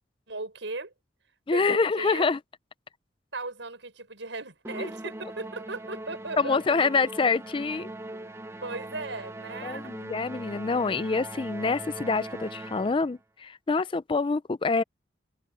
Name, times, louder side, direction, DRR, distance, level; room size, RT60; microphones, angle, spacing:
voice 1, 0.3-0.9 1.5-2.3 3.3-6.6 8.1-8.3 8.6-9.9, right 3 dB, 90° right, 6.3 m, -37 dB
voice 2, 1.5-2.4 4.8-4.9 6.4-7.9 9.6-14.8, left 4 dB, 30° left, 0.4 m, -26 dB
Musical instrument, 4.6-13.1, right 1 dB, 15° right, 0.6 m, -40 dB
open air
head